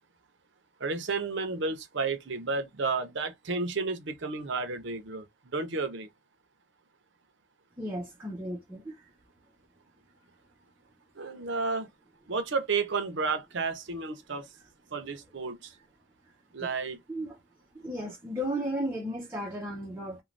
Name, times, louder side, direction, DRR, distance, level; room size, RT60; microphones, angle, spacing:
voice 1, 0.8-6.1 11.2-11.9 12.3-14.5 14.9-15.7 16.5-17.0, right 4 dB, 55° right, 0.6 m, -32 dB
voice 2, 7.8-8.9 16.6-16.7 17.1-17.3 17.7-20.2, equal, 15° right, 0.5 m, -34 dB
2.5 x 2.2 x 3.1 m
head